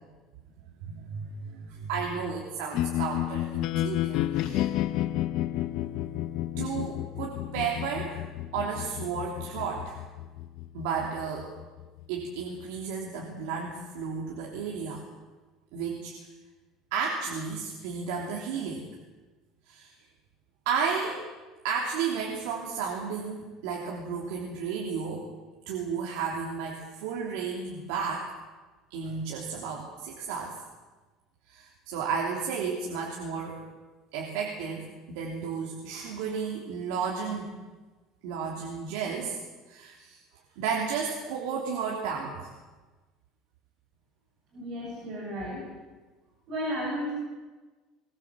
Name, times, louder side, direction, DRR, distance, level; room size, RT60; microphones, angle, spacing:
voice 1, 0.8-4.7 6.6-8.2 8.5-10.0 10.7-11.5 12.1-15.0 15.7-16.1 16.9-18.9 19.7-19.9 20.6-21.3 21.6-25.3 25.7-28.3 28.9-30.6 31.5-33.6 34.1-37.5 38.2-39.4 39.7-40.2 40.6-42.5, right 6 dB, 90° right, -1 dB, 3.2 m, -33 dB
sound 1, 2.7-12.8, left 13 dB, 55° left, 0.9 m, -32 dB
voice 2, 44.5-45.6 46.5-47.1, equal, 45° right, -3 dB, 6.8 m, -33 dB
21.5 x 20.5 x 7.4 m, 1.3 s
cardioid pair, 165°, 0 cm